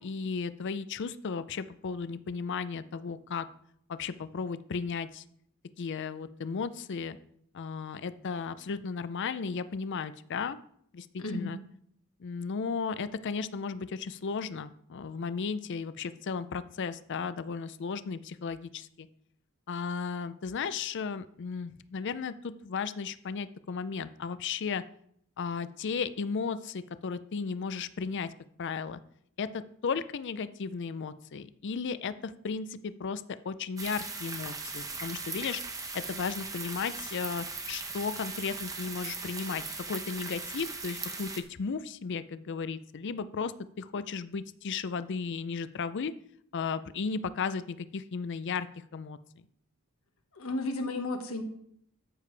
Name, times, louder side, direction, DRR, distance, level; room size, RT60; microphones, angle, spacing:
voice 1, 0.0-3.5 3.9-5.2 5.8-7.2 7.5-10.6 10.9-11.6 12.2-19.1 19.7-24.8 25.4-28.3 28.6-29.0 29.4-35.6 35.9-46.1 46.5-48.7 48.9-49.2, left 5 dB, 55° left, 14 dB, 0.5 m, -35 dB
voice 2, 11.2-11.6 50.3-51.4, left 2 dB, 75° left, 5 dB, 1.5 m, -33 dB
sound 1, 33.8-41.4, right 4 dB, 15° right, 1.0 m, -39 dB
13.5 x 6.6 x 3.3 m, 0.68 s
head